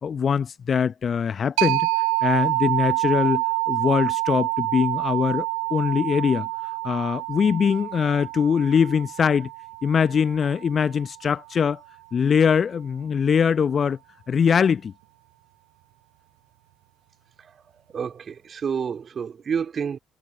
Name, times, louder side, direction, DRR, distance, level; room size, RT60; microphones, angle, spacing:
voice 1, 0.0-1.9 2.2-5.5 5.7-6.5 6.8-9.5 9.8-11.8 12.1-14.0 14.3-14.9, left 7 dB, 45° left, 1.0 m, -22 dB
sound 1, 1.6-11.0, right 34 dB, 70° right, 5.4 m, -27 dB
voice 2, 17.9-20.0, right 7 dB, 45° right, 3.2 m, -29 dB
figure-of-eight pair, 45°, 0 cm